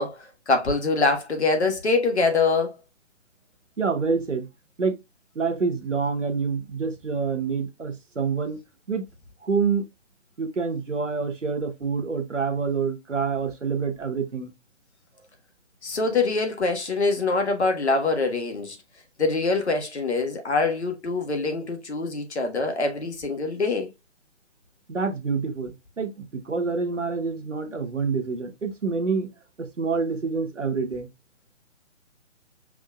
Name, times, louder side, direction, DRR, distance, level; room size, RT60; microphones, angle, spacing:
voice 1, 0.0-2.8 15.8-18.8 19.2-23.9, left 3 dB, 65° left, 1.5 m, -24 dB
voice 2, 3.8-4.5 4.8-5.0 5.3-8.6 8.9-9.0 9.4-9.9 10.4-14.5 24.9-29.3 29.6-31.1, right 5 dB, 85° right, 1.1 m, -27 dB
6.0 x 3.7 x 2.3 m
figure-of-eight pair, 140°, 36 cm